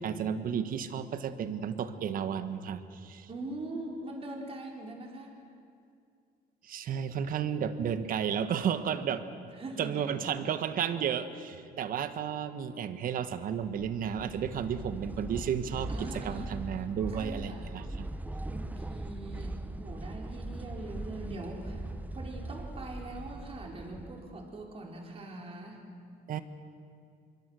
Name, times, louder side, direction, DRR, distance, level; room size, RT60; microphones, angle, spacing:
voice 1, 0.0-3.3 6.6-9.2 9.8-18.1 26.3-26.4, right 8 dB, 55° right, 11 dB, 1.4 m, -33 dB
voice 2, 3.3-5.3 9.6-10.2 15.9-16.6 17.1-17.7 18.5-21.8 22.1-25.8, right 2 dB, 35° right, 0 dB, 4.4 m, -42 dB
sound 1, 13.6-24.6, right 2 dB, 10° right, 0.7 m, -40 dB
25.5 x 23.0 x 6.4 m, 2.3 s
cardioid pair, 110°, 17 cm